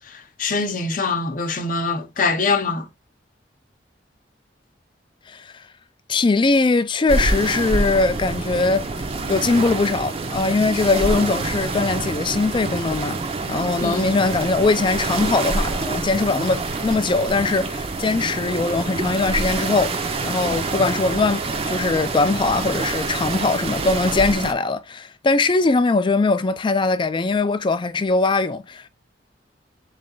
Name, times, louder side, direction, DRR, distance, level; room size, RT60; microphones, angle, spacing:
voice 1, 0.0-2.9 13.8-14.1, left 4 dB, 50° left, 0.8 m, -24 dB
voice 2, 6.1-8.8 9.3-13.2 13.5-28.9, left 3 dB, 25° left, 0.4 m, -21 dB
sound 1, 7.1-24.5, right 3 dB, 30° right, 0.6 m, -26 dB
3.8 x 3.2 x 3.8 m
head